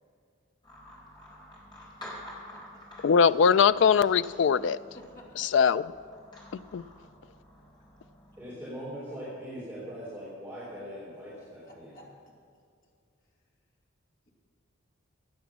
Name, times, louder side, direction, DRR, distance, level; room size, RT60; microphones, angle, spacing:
sound 1, 0.6-8.5, left 1 dB, 20° left, 3.9 m, -49 dB
voice 1, 3.0-4.8 5.4-5.8 6.7-6.8, left 6 dB, 60° left, 15 dB, 0.3 m, -21 dB
voice 2, 4.9-5.5 11.6-12.0, left 1 dB, 40° left, -3 dB, 2.8 m, -51 dB
voice 3, 8.4-12.0, equal, 5° right, -9 dB, 3.4 m, -41 dB
16.0 x 9.5 x 6.0 m, 2.3 s
head